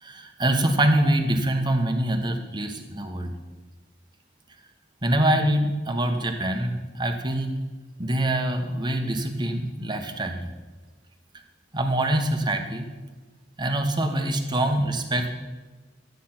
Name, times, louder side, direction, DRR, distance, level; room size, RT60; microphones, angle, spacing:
voice 1, 0.0-3.3 5.0-7.6 8.0-10.5 11.7-12.9 13.6-15.3, right 1 dB, 25° right, 5 dB, 1.2 m, -24 dB
12.5 x 9.3 x 5.9 m, 1.3 s
head